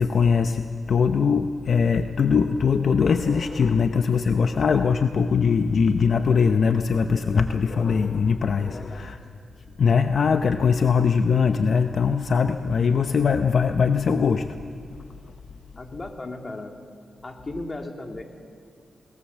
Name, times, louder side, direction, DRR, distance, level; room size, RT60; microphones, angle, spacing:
voice 1, 0.0-9.2 9.8-14.6, left 6 dB, 60° left, 7 dB, 0.8 m, -21 dB
voice 2, 8.7-9.2 15.8-16.8 17.2-18.2, left 2 dB, 35° left, 3 dB, 2.6 m, -36 dB
21.0 x 20.5 x 7.4 m, 2.3 s
cardioid pair, 70°, 0 cm